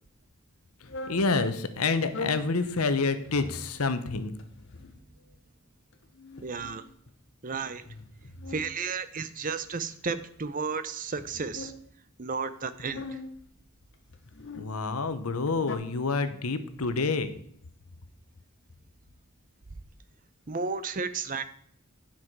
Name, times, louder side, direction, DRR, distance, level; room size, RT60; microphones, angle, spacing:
sound 1, 0.8-1.2 2.0-2.5 3.2-3.7 4.4-5.1 5.9-7.2 7.7-8.7 9.4-10.4 11.1-11.8 12.7-13.4 14.1-14.7 15.4-15.8, left 3 dB, 55° left, 1.1 m, -42 dB
voice 1, 1.1-4.3 14.6-17.3, left 4 dB, 85° left, 11 dB, 0.9 m, -28 dB
voice 2, 6.4-6.8 7.4-7.8 8.5-11.7 12.2-13.1 20.5-21.4, right 5 dB, 40° right, 12 dB, 0.6 m, -33 dB
10.0 x 5.9 x 4.6 m, 0.67 s
head